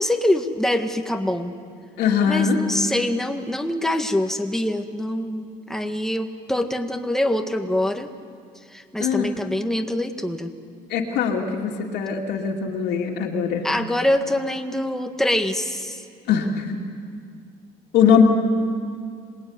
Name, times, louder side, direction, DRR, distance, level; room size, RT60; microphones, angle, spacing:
voice 1, 0.0-1.5 2.3-8.1 8.7-10.5 13.6-16.0, left 1 dB, 5° left, 5 dB, 1.8 m, -24 dB
voice 2, 2.0-2.6 9.0-9.3 10.9-13.6 16.3-16.7 17.9-18.2, left 7 dB, 80° left, 0 dB, 2.7 m, -21 dB
26.5 x 20.0 x 9.7 m, 2.2 s
cardioid pair, 110°, 17 cm